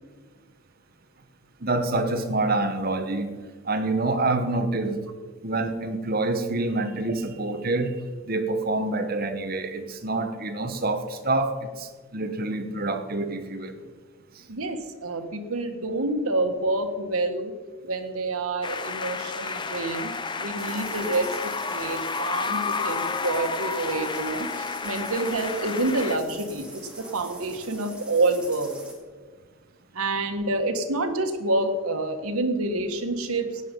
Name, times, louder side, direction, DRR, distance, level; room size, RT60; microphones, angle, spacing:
voice 1, 1.6-3.3 3.6-5.0 5.4-8.0 8.3-13.8, right 2 dB, 45° right, 8 dB, 1.1 m, -27 dB
voice 2, 14.5-17.5 17.8-28.7 29.9-33.6, right 2 dB, 85° right, 6 dB, 1.5 m, -28 dB
sound 1, 18.6-26.2, left 4 dB, 20° left, 0.6 m, -31 dB
sound 2, 20.6-28.9, right 1 dB, 5° right, 2.3 m, -43 dB
16.5 x 9.7 x 5.3 m, 1.4 s
head